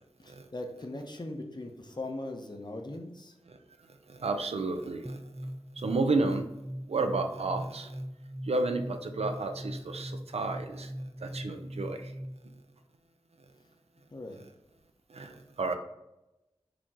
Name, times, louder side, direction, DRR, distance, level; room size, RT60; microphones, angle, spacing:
voice 1, 0.2-3.4 14.1-14.4, left 2 dB, 45° left, 3 dB, 0.8 m, -40 dB
voice 2, 4.1-5.2 5.8-6.5 6.9-8.0 8.4-10.9 11.2-12.1 15.1-15.7, right 3 dB, 80° right, 6 dB, 0.5 m, -31 dB
sound 1, 5.0-12.6, equal, 5° right, 0.3 m, -41 dB
4.9 x 3.0 x 3.6 m, 0.93 s
wide cardioid pair, 45°, 10 cm